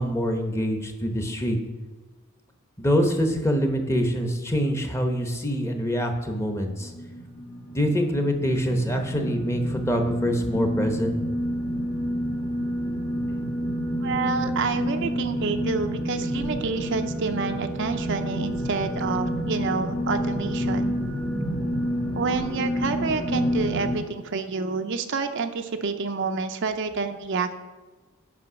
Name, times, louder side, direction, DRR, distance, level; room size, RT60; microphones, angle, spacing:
voice 1, 0.0-1.6 2.8-6.9 7.7-11.1, equal, 15° left, 4 dB, 0.9 m, -25 dB
sound 1, 6.8-24.0, equal, 30° left, 1.9 m, -29 dB
voice 2, 14.0-21.0 22.1-27.5, right 4 dB, 55° right, 7 dB, 0.5 m, -28 dB
8.3 x 5.4 x 6.1 m, 1.3 s
head